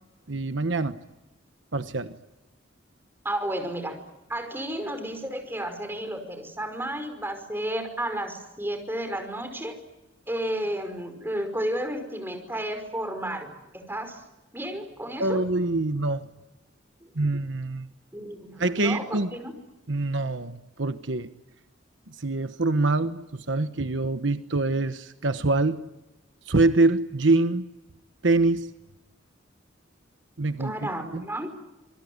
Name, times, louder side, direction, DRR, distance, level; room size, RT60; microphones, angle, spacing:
voice 1, 0.3-1.0 1.7-2.1 15.2-16.3 17.2-17.9 18.6-19.3 19.9-21.3 22.2-25.8 26.5-27.6 28.2-28.7 30.4-31.2, right 2 dB, 75° right, 10 dB, 1.2 m, -25 dB
voice 2, 3.2-4.0 4.3-9.7 10.3-13.5 13.7-14.2 14.5-15.4 17.0-17.1 18.1-19.5 30.6-31.5, right 1 dB, 10° right, 6 dB, 5.4 m, -32 dB
27.0 x 22.5 x 9.6 m, 1.0 s
head